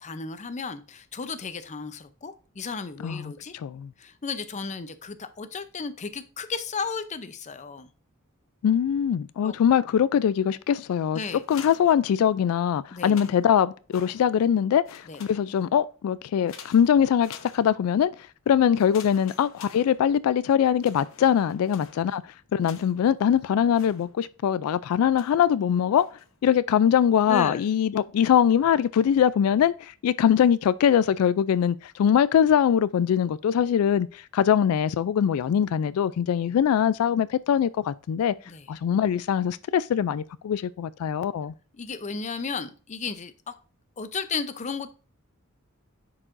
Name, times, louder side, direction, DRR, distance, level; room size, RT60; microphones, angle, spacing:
voice 1, 0.0-3.5 4.0-7.9 9.4-9.5 11.1-11.4 12.9-13.2 15.1-15.2 27.3-27.7 38.5-38.7 41.7-43.5 44.0-44.9, left 5 dB, 35° left, 0.6 m, -34 dB
voice 2, 3.0-3.9 8.6-22.2 22.5-26.1 26.4-38.3 38.7-41.5, left 8 dB, 90° left, 0.3 m, -22 dB
sound 1, 11.3-12.5 12.9-14.5 14.8-15.8 16.5-18.0 18.7-20.4 20.8-23.2 23.7-24.5 25.1-25.5 25.9-26.4, left 6 dB, 65° left, 0.9 m, -48 dB
9.7 x 4.7 x 2.5 m
head